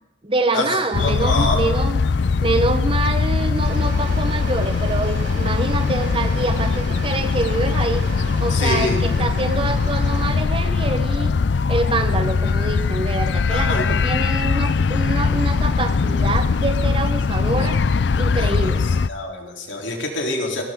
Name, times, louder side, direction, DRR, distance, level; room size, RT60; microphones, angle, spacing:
voice 1, 0.2-2.0 2.4-8.0 8.4-11.3 11.7-17.8 18.2-18.9, right 2 dB, 30° right, 8 dB, 1.1 m, -25 dB
sound 1, 0.9-19.1, left 4 dB, 65° left, 0.4 m, -21 dB
voice 2, 1.0-1.6 8.5-9.0 13.5-14.0 18.4-18.5 18.8-20.6, left 2 dB, 85° left, 0 dB, 3.6 m, -25 dB
sound 2, 3.6-10.4, right 2 dB, 80° right, 4.8 m, -36 dB
21.0 x 17.5 x 3.8 m, 1.0 s
head